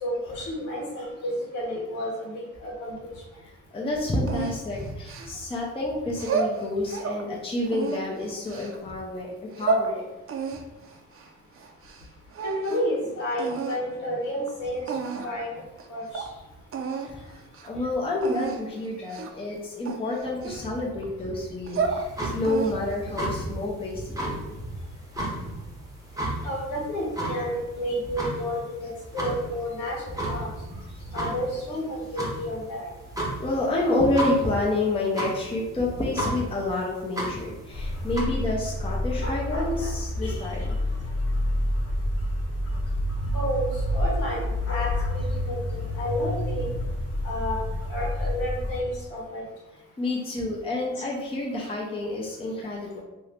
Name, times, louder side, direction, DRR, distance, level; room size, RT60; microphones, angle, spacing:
voice 1, 0.0-3.1 12.4-15.5 15.9-16.2 26.4-30.5 31.1-32.9 43.3-46.7 47.2-47.6 47.9-49.4, equal, 80° left, -4 dB, 1.3 m, -31 dB
voice 2, 3.4-10.1 17.0-17.4 17.6-24.7 25.4-25.5 30.9-31.2 33.4-40.8 43.2-43.3 50.0-53.0, left 2 dB, 20° left, -3 dB, 0.6 m, -29 dB
sound 1, 4.3-5.6 6.1-7.2 7.7-8.8 9.3-9.9 10.3-12.1 12.3-13.0 13.4-13.8 14.5-14.6 14.9-15.4 15.8-15.9 16.1-16.3 16.7-17.1 17.4-17.7 18.2-18.6 19.1-19.4 19.9-21.0 21.5-22.0 22.4-23.0, right 4 dB, 45° right, 0.5 m, -30 dB
sound 2, 21.8-38.2, right 1 dB, 10° right, 0.8 m, -34 dB
sound 3, 37.7-48.8, left 1 dB, 55° left, 1.0 m, -28 dB
2.8 x 2.7 x 3.3 m, 1.0 s
cardioid pair, 90°, 30 cm